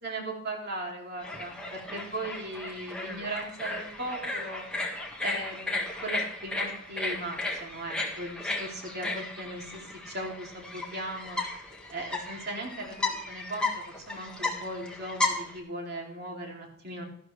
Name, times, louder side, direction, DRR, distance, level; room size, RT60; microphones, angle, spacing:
voice 1, 0.0-4.7 5.2-11.4 11.9-17.0, right 1 dB, 55° right, 0 dB, 2.9 m, -38 dB
sound 1, 1.2-15.6, left 2 dB, 5° left, 1.7 m, -35 dB
12.5 x 12.0 x 3.3 m, 0.66 s
head